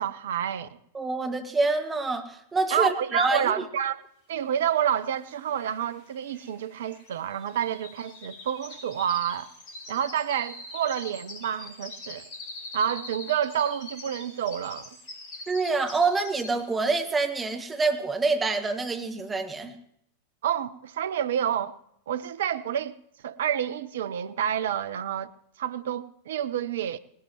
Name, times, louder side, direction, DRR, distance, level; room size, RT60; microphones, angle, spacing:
voice 1, 0.0-0.8 2.7-4.0 4.3-9.5 9.9-12.3 12.7-15.0 20.4-21.8 22.1-23.0 23.2-25.3 25.6-27.0, right 9 dB, 60° right, 0.6 m, -29 dB
voice 2, 0.9-3.5 15.5-19.8, right 3 dB, 15° right, 1.4 m, -26 dB
sound 1, 5.1-5.2 5.4-16.8 17.2-17.5 18.0-18.1, left 2 dB, 35° left, 3.7 m, -43 dB
19.0 x 17.5 x 3.1 m
figure-of-eight pair, 90°, 0 cm